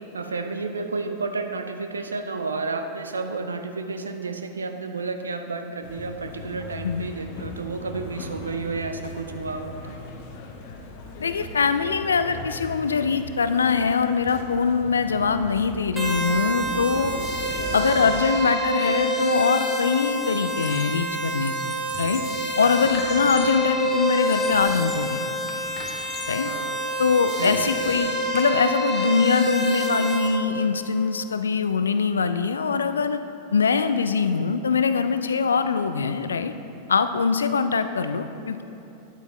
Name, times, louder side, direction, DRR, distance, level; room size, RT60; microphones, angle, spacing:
voice 1, 0.1-10.0 23.2-23.4 26.3-26.8 27.4-27.7, right 4 dB, 75° right, 7 dB, 0.5 m, -31 dB
sound 1, 5.8-18.2, left 2 dB, 50° left, 0.9 m, -38 dB
voice 2, 11.2-17.2 17.7-22.2 22.6-25.2 26.3-26.5 27.0-33.2 33.5-36.5 36.9-38.6, left 5 dB, 70° left, 10 dB, 0.3 m, -23 dB
sound 2, 16.0-30.3, right 1 dB, 10° right, 1.9 m, -27 dB
Squeak, 19.2-19.5 19.8-21.0 21.4-23.6 24.1-25.1 25.5-26.4 26.9-28.5, left 3 dB, 25° left, 1.1 m, -42 dB
9.7 x 8.2 x 3.1 m, 2.9 s
figure-of-eight pair, 90°, 0 cm